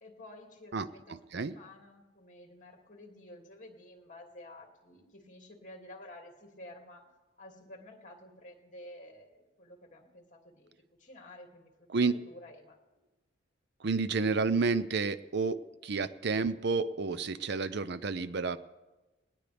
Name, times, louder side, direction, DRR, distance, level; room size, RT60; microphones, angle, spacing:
voice 1, 0.0-1.2 1.4-7.0 7.4-11.7 12.0-12.8, left 1 dB, 40° left, 2 dB, 2.5 m, -51 dB
voice 2, 0.7-1.5 11.9-12.2 13.8-18.6, right 4 dB, 55° right, 14 dB, 0.5 m, -30 dB
19.0 x 19.0 x 3.4 m, 1.1 s
head